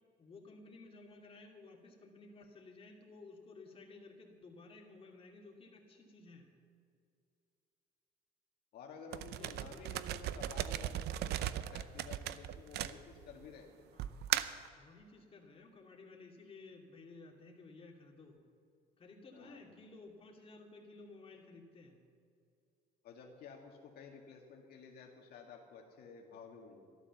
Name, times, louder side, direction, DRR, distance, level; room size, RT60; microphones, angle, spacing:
voice 1, 0.2-6.5 9.1-10.1 13.9-14.1 14.8-18.4 19.0-22.0, left 3 dB, 35° left, 0 dB, 2.6 m, -55 dB
voice 2, 8.7-13.7 19.3-19.6 23.0-26.8, left 5 dB, 65° left, 1 dB, 1.8 m, -53 dB
sound 1, 9.1-13.4 14.0-14.7, right 12 dB, 75° right, 0.6 m, -37 dB
12.5 x 12.5 x 7.1 m, 2.4 s
cardioid pair, 110°, 17 cm